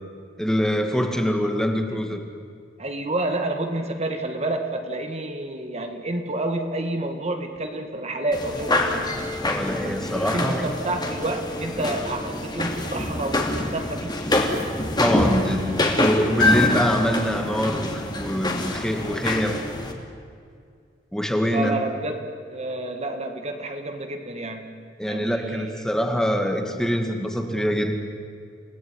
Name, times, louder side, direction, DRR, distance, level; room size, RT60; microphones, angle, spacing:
voice 1, 0.4-2.2 9.4-10.7 15.0-19.6 21.1-21.8 25.0-27.9, equal, 5° left, 4 dB, 2.2 m, -24 dB
voice 2, 2.8-9.1 9.8-14.1 21.5-22.2 22.5-24.7 25.0-25.8, right 2 dB, 35° right, 5 dB, 1.9 m, -29 dB
sound 1, 8.3-19.9, left 2 dB, 25° left, 2.9 m, -25 dB
29.0 x 18.0 x 9.9 m, 2.3 s
head